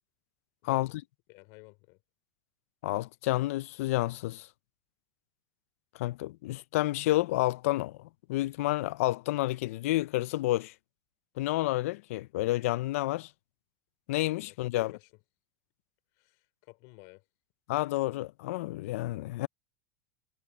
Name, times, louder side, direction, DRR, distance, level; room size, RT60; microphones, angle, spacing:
voice 1, 0.6-0.9 1.3-2.0 14.4-15.1 16.2-17.2, left 28 dB, 50° left, 4.5 m, -54 dB
voice 2, 2.8-4.5 6.0-10.7 11.4-13.3 14.1-14.9 17.7-19.5, left 17 dB, 75° left, 0.5 m, -30 dB
supercardioid pair, 160°, 8 cm